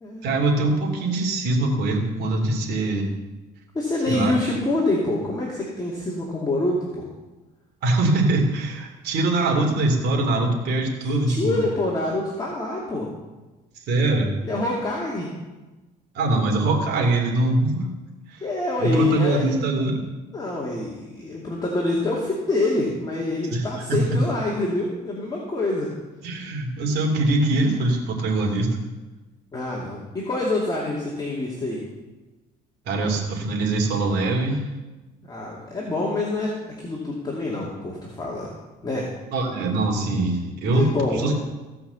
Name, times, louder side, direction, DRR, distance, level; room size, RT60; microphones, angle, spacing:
voice 1, 0.2-3.1 4.1-4.3 7.8-11.6 13.9-14.3 16.1-17.9 18.3-18.4 18.8-20.0 23.5-24.2 26.2-28.7 32.9-34.6 39.3-41.3, right 2 dB, 75° right, 1 dB, 2.8 m, -23 dB
voice 2, 3.7-7.1 11.0-13.1 14.4-15.3 18.4-19.5 20.3-25.9 29.5-31.8 35.3-36.5 36.8-38.5 38.8-39.1 40.7-41.3, left 2 dB, 25° left, -4 dB, 2.4 m, -26 dB
17.0 x 5.7 x 7.0 m, 1.2 s
cardioid pair, 110°, 17 cm